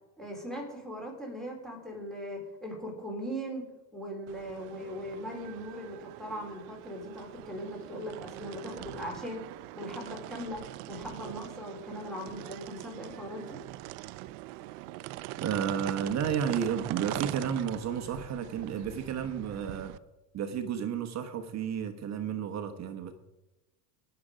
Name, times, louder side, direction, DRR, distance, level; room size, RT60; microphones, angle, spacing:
voice 1, 0.2-9.4 9.8-13.6, equal, ahead, -1 dB, 3.7 m, -39 dB
sound 1, 4.3-20.0, right 17 dB, 70° right, 0.7 m, -42 dB
voice 2, 15.4-19.9 20.3-23.1, right 8 dB, 35° right, 7 dB, 1.2 m, -32 dB
19.0 x 6.9 x 5.1 m, 1.0 s
cardioid pair, 140°, 44 cm